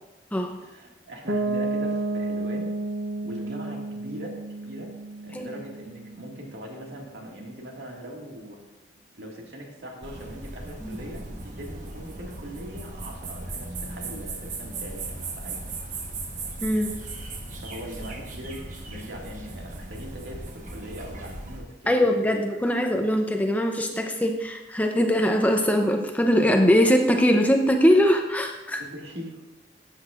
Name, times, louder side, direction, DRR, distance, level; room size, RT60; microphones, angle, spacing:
voice 1, 0.6-2.7 3.2-4.4 4.7-4.9 5.2-8.6 9.2-15.6 17.5-22.5 28.8-29.4, equal, 80° right, -1 dB, 2.1 m, -41 dB
Piano, 1.3-7.0, right 2 dB, 65° right, 0.8 m, -31 dB
sound 1, 10.0-21.6, right 2 dB, 45° right, 1.2 m, -37 dB
voice 2, 16.6-16.9 21.9-28.8, equal, 10° left, 3 dB, 0.6 m, -21 dB
13.0 x 8.1 x 2.5 m, 1.0 s
head